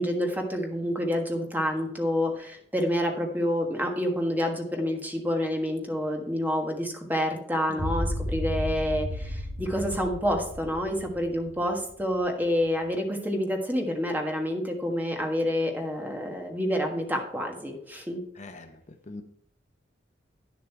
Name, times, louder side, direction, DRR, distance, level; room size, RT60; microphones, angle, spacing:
voice 1, 0.0-18.2, equal, 10° right, 2 dB, 1.5 m, -28 dB
sound 1, 7.8-12.1, equal, 85° right, 1.7 m, -33 dB
voice 2, 18.4-19.2, left 2 dB, 40° left, 7 dB, 0.7 m, -43 dB
10.0 x 7.2 x 4.5 m, 0.67 s
head